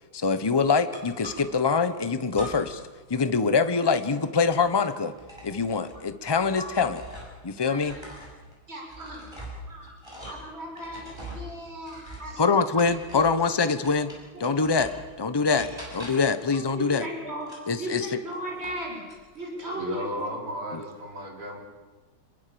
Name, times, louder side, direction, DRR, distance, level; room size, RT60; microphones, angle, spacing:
voice 1, 0.1-2.8 3.1-5.1 5.4-7.0 7.4-8.0 12.4-14.1 14.4-17.0 17.7-18.0 20.7-20.8, left 5 dB, 25° left, 11 dB, 0.5 m, -24 dB
sound 1, 0.9-1.7 2.3-2.9 3.2-7.5 7.8-13.4 13.8-15.1 15.6-16.4 17.4-18.8 19.1-19.7, equal, 10° right, 7.1 m, -43 dB
voice 2, 6.5-6.8 7.6-8.0 8.7-9.2 9.7-9.9 10.2-11.0 11.3-12.4 12.7-13.2 14.3-14.5 16.5-17.5 17.8-19.0 19.3-20.4, equal, 25° right, 0 dB, 6.2 m, -37 dB
voice 3, 19.7-21.6, equal, 85° right, 1 dB, 5.3 m, -34 dB
27.0 x 22.0 x 7.0 m, 1.3 s
omnidirectional pair, 2.4 m